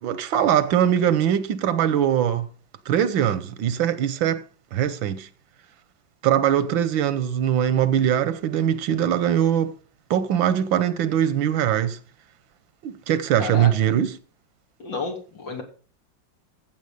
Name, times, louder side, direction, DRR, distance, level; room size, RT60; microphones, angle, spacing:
voice 1, 0.0-2.5 2.9-4.4 4.7-5.3 6.2-9.7 10.1-12.0 12.8-14.2, right 10 dB, 85° right, 1.7 m, -22 dB
voice 2, 13.4-13.7 14.8-15.6, left 4 dB, 75° left, 3.7 m, -31 dB
15.0 x 7.2 x 5.2 m
omnidirectional pair, 2.0 m